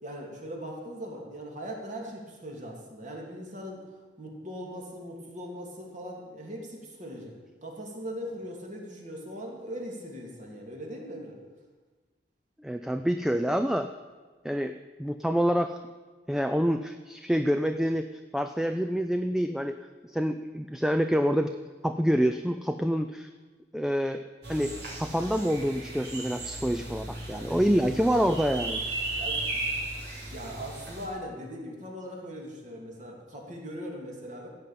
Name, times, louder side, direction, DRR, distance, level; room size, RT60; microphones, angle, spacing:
voice 1, 0.0-3.8 4.2-7.3 7.6-11.4 27.1-27.4 29.2-29.7 30.3-34.5, equal, 45° right, 0 dB, 2.8 m, -40 dB
voice 2, 12.6-13.9 14.4-15.8 16.3-18.1 18.3-19.8 20.1-21.5 21.8-23.3 23.7-24.2 24.5-24.7 25.0-28.8, equal, 5° right, 8 dB, 0.4 m, -27 dB
sound 1, 24.4-31.1, right 2 dB, 65° right, 3.9 m, -35 dB
15.5 x 5.4 x 9.2 m, 1.4 s
head